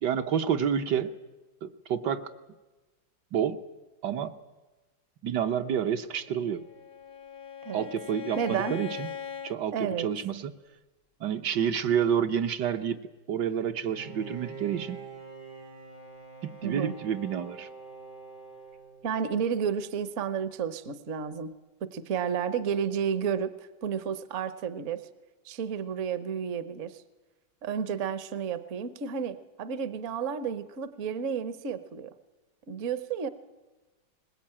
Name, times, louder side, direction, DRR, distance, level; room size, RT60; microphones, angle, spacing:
voice 1, 0.0-1.2 1.6-2.3 3.3-3.6 4.0-4.4 5.2-6.6 7.7-9.1 9.4-10.5 11.2-15.0 16.4-17.7, right 8 dB, 70° right, 7 dB, 1.4 m, -29 dB
Bowed string instrument, 6.4-9.6, left 7 dB, 50° left, 0.7 m, -40 dB
voice 2, 8.4-8.8 9.7-10.1 16.6-16.9 19.0-21.5 21.8-25.1 25.4-27.0 27.6-32.1 32.7-33.3, right 7 dB, 50° right, 12 dB, 1.1 m, -31 dB
Bowed string instrument 2, 13.9-19.5, right 4 dB, 90° right, 6.3 m, -45 dB
21.0 x 20.0 x 8.8 m, 1.2 s
omnidirectional pair, 2.0 m